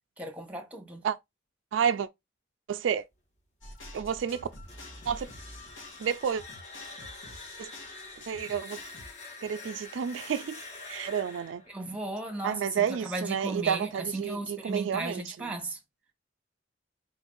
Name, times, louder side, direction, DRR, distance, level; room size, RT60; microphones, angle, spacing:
voice 1, 0.2-1.1 11.7-15.8, right 2 dB, 5° right, 1.0 m, -36 dB
voice 2, 1.7-2.1 2.7-3.0 3.9-4.5 5.1-5.3 6.0-6.4 7.6-7.7 8.3-8.8 9.4-10.6 10.9-11.6 12.4-15.4, right 7 dB, 70° right, 0.3 m, -30 dB
sound 1, 3.6-9.1, left 1 dB, 80° left, 1.8 m, -47 dB
sound 2, 4.5-13.3, left 3 dB, 40° left, 1.2 m, -47 dB
4.2 x 2.6 x 3.8 m
head